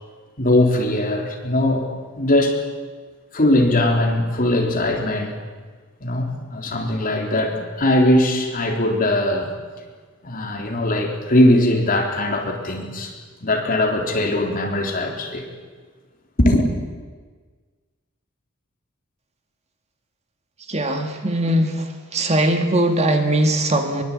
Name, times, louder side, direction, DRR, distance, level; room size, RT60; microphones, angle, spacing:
voice 1, 0.4-1.9 2.2-2.6 3.3-5.4 6.0-9.5 10.2-13.1 13.4-15.5 16.4-16.7, left 1 dB, 40° left, 1 dB, 3.9 m, -20 dB
voice 2, 20.7-21.8 22.1-24.0, right 1 dB, 30° right, 5 dB, 2.1 m, -20 dB
23.0 x 23.0 x 8.8 m, 1.5 s
head